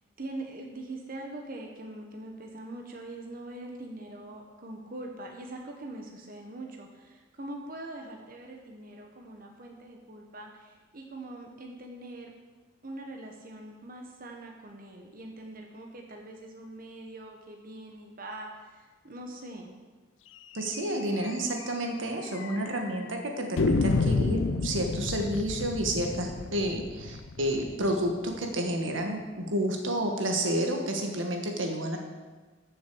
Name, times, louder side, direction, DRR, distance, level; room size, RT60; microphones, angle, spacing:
voice 1, 0.2-12.3 12.8-19.7, right 1 dB, 50° right, 1 dB, 1.3 m, -43 dB
voice 2, 20.5-32.0, right 1 dB, 85° right, 3 dB, 1.4 m, -30 dB
sound 1, 20.7-20.9 21.2-21.3 21.6-21.7 22.3-22.9 23.6-28.4, left 3 dB, 75° left, 0.5 m, -30 dB
14.0 x 6.6 x 4.7 m, 1.3 s
head